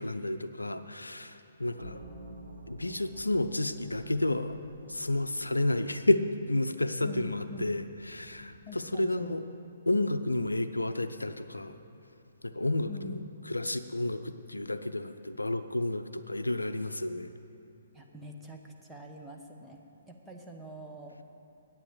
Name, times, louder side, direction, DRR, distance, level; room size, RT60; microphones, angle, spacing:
voice 1, 0.0-2.0 2.7-4.6 4.9-9.4 9.9-11.8 12.4-13.2 13.5-17.3, left 2 dB, 85° left, 10 dB, 0.5 m, -31 dB
sound 1, 1.8-8.7, right 2 dB, 55° right, 2.4 m, -51 dB
voice 2, 7.0-7.7 8.7-9.4 12.8-13.2 17.9-19.8 20.1-21.1, left 1 dB, 5° right, -1 dB, 1.1 m, -45 dB
9.7 x 8.8 x 8.1 m, 3.0 s
figure-of-eight pair, 125°, 0 cm